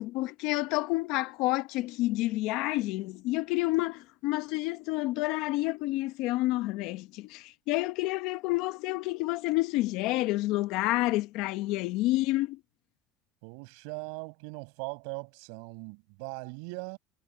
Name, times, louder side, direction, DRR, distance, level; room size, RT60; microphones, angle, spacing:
voice 1, 0.0-12.6, left 19 dB, 70° left, 0.8 m, -29 dB
voice 2, 13.4-17.0, right 32 dB, 80° right, 5.6 m, -40 dB
cardioid pair, 130°, 0 cm